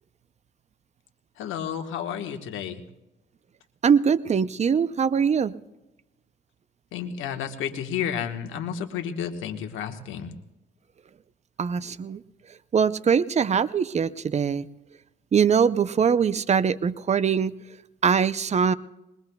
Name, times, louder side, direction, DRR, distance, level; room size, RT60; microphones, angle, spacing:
voice 1, 1.4-2.8 6.9-10.3, left 8 dB, 85° left, 6 dB, 1.3 m, -31 dB
voice 2, 3.8-5.5 11.6-12.2 12.7-14.7 15.3-17.5 18.0-18.7, right 6 dB, 35° right, 15 dB, 0.5 m, -22 dB
21.0 x 21.0 x 2.3 m, 0.98 s
cardioid pair, 90°, 20 cm